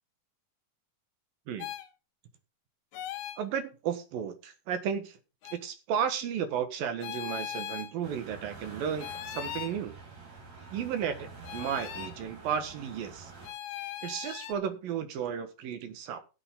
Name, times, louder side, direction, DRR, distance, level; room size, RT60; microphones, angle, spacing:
sound 1, 1.6-1.9 2.9-3.4 5.4-5.6 7.0-7.9 9.0-9.8 11.4-12.1 13.4-14.5, left 11 dB, 70° left, 2.4 m, -39 dB
voice 1, 3.4-5.2 5.5-9.9 10.7-13.3 14.0-16.2, right 8 dB, 75° right, 9 dB, 3.2 m, -33 dB
sound 2, 8.0-13.5, right 4 dB, 50° right, 4.8 m, -47 dB
17.0 x 7.3 x 3.8 m, 0.30 s
omnidirectional pair, 4.3 m